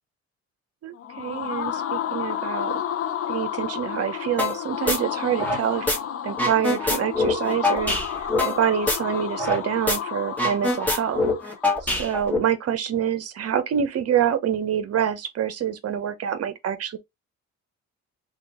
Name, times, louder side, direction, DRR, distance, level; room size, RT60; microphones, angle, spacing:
voice 1, 0.8-2.8 3.3-5.9 6.2-11.5 11.8-17.0, right 9 dB, 55° right, 0.7 m, -26 dB
sound 1, 0.9-11.8, left 9 dB, 50° left, 0.6 m, -31 dB
sound 2, 4.4-4.6 4.9-6.0 6.3-9.6 9.9-10.0 10.3-12.4, left 2 dB, 5° left, 1.1 m, -24 dB
2.9 x 2.4 x 4.1 m
cardioid pair, 90°, 30 cm